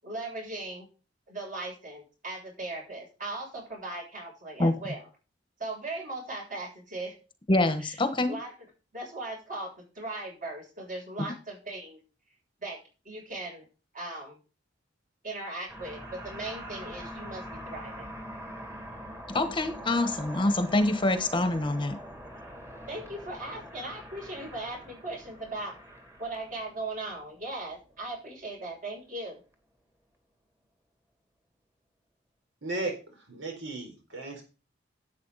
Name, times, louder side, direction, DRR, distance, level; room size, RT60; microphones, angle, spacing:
voice 1, 0.0-0.9 1.3-5.1 5.6-7.1 7.8-8.0 8.3-8.5 8.9-12.0 12.6-13.7 13.9-14.4 15.2-18.1 22.9-25.8 26.2-29.4, right 2 dB, 45° right, 7.2 m, -38 dB
voice 2, 7.5-8.4 19.3-22.0, left 2 dB, 25° left, 1.1 m, -25 dB
sound 1, 15.7-28.4, equal, 15° right, 2.3 m, -44 dB
voice 3, 32.6-34.4, right 2 dB, 70° right, 4.1 m, -35 dB
11.5 x 8.5 x 4.1 m
head